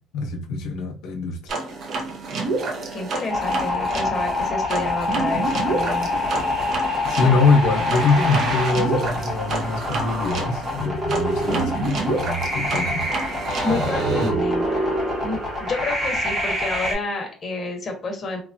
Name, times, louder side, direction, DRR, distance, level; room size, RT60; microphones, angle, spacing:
voice 1, 0.1-1.5 7.0-13.1 13.7-14.4, left 3 dB, 85° left, 0.6 m, -23 dB
sound 1, 1.5-14.3, right 3 dB, 45° right, 0.5 m, -29 dB
voice 2, 2.9-6.1 7.2-7.4 13.6-14.6 15.2-18.4, left 2 dB, 30° left, 0.7 m, -29 dB
sound 2, 3.3-16.9, left 1 dB, 25° right, 0.9 m, -26 dB
2.9 x 2.2 x 2.5 m
cardioid pair, 150°, 0 cm